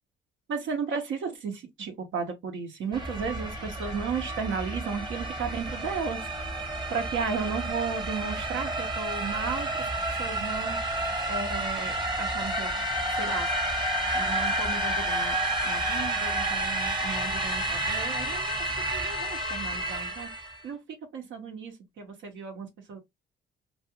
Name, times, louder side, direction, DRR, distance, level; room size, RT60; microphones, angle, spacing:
voice 1, 0.5-6.2 6.9-9.7 10.2-10.8 11.3-12.7 13.1-13.5 14.1-15.4 15.6-18.5 18.8-20.3 20.6-20.8 21.1-23.0, right 5 dB, 75° right, 0.9 m, -34 dB
sound 1, 2.9-20.6, right 1 dB, 25° right, 0.9 m, -30 dB
2.4 x 2.4 x 2.8 m
cardioid pair, 90°, 20 cm